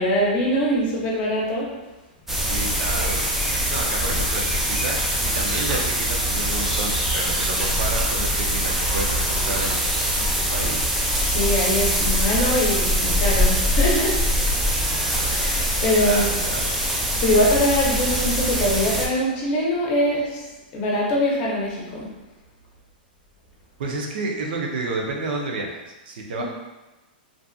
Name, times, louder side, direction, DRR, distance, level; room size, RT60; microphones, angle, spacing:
voice 1, 0.0-1.8 11.3-14.2 15.3-16.2 17.2-20.4 20.7-22.1 26.4-26.5, left 1 dB, 35° left, -3 dB, 0.7 m, -23 dB
sound 1, 2.3-19.1, equal, 5° right, 0.3 m, -23 dB
voice 2, 2.5-9.8 10.2-10.8 16.0-16.7 23.8-26.4, right 3 dB, 70° right, 0 dB, 0.5 m, -30 dB
2.5 x 2.4 x 2.3 m, 1.1 s
hypercardioid pair, 150°, 5 cm